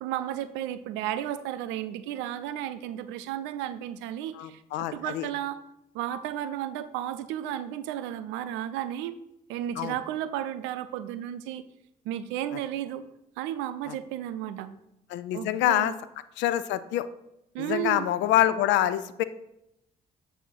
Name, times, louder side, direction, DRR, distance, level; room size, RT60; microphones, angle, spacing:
voice 1, 0.0-5.6 5.9-9.2 9.5-11.6 12.0-13.0 13.4-14.7 15.3-15.9 17.5-18.1, right 11 dB, 75° right, 13 dB, 0.4 m, -33 dB
voice 2, 4.4-5.3 9.8-10.0 13.9-14.0 15.1-15.9 16.4-17.1 17.6-19.2, left 12 dB, 70° left, 14 dB, 0.4 m, -26 dB
7.4 x 2.7 x 5.6 m, 0.85 s
hypercardioid pair, 45°, 20 cm